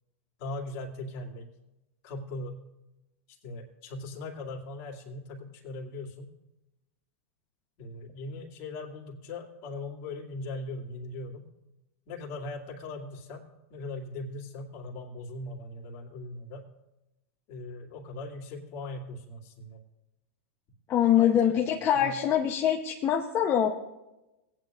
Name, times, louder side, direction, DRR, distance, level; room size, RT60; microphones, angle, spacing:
voice 1, 0.4-1.5 2.0-2.6 3.4-6.3 7.8-11.5 12.1-13.4 13.7-16.6 17.5-19.8 21.2-21.6 21.9-22.2, left 2 dB, 45° left, -1 dB, 2.4 m, -39 dB
voice 2, 20.9-23.7, left 9 dB, 30° left, 1 dB, 0.8 m, -24 dB
18.0 x 9.4 x 2.5 m, 0.98 s
hypercardioid pair, 135°, 8 cm